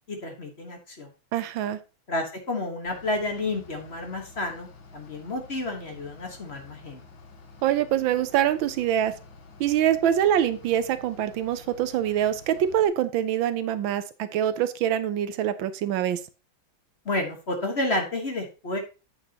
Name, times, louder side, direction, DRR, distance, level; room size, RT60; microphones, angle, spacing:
voice 1, 0.1-1.1 2.1-7.0 17.0-18.8, left 2 dB, 35° left, 3 dB, 1.5 m, -30 dB
voice 2, 1.3-1.8 7.6-9.1 9.6-16.2, right 10 dB, 80° right, 13 dB, 1.4 m, -24 dB
Bus / Idling, 2.9-12.9, left 4 dB, 75° left, 2.1 m, -50 dB
8.3 x 8.0 x 2.9 m, 0.30 s
omnidirectional pair, 2.1 m